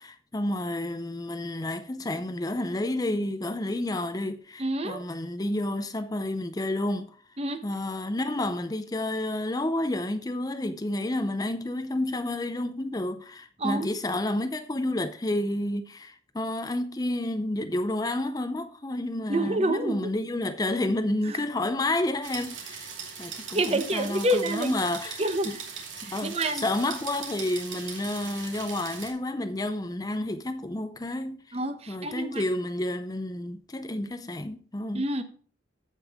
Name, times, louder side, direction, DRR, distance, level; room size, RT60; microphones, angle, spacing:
voice 1, 0.0-7.2 7.6-22.9 23.2-25.6 25.9-31.6 31.9-35.0, left 1 dB, 20° left, 0.5 m, -30 dB
voice 2, 4.6-5.0 7.4-7.6 13.6-13.9 19.3-20.1 21.3-21.4 23.5-24.7 25.2-25.6 26.0-26.6 31.5-32.4 34.9-35.2, right 1 dB, 35° right, 1.0 m, -28 dB
sound 1, 22.2-29.1, right 6 dB, 90° right, 2.7 m, -40 dB
15.0 x 5.4 x 3.6 m
head